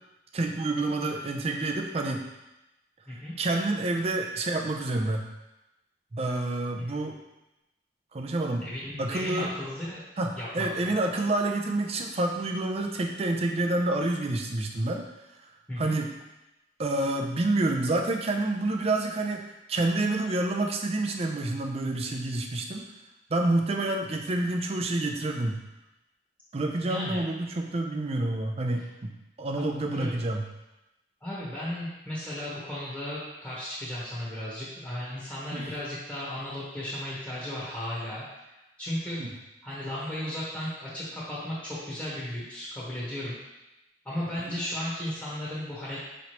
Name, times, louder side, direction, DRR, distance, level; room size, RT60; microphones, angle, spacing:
voice 1, 0.3-2.2 3.4-5.3 6.1-7.2 8.1-8.7 9.0-9.5 10.2-15.1 15.8-16.1 16.8-22.9 23.3-25.6 26.5-30.4 35.5-35.6 39.2-39.3 44.5-44.6, right 2 dB, 35° right, 2 dB, 0.4 m, -28 dB
voice 2, 8.6-10.1 10.3-10.9 15.7-16.0 26.8-27.2 29.9-30.1 31.2-39.2 39.6-43.4 44.0-46.0, left 1 dB, 10° left, -9 dB, 1.1 m, -35 dB
5.4 x 3.1 x 2.9 m, 0.97 s
head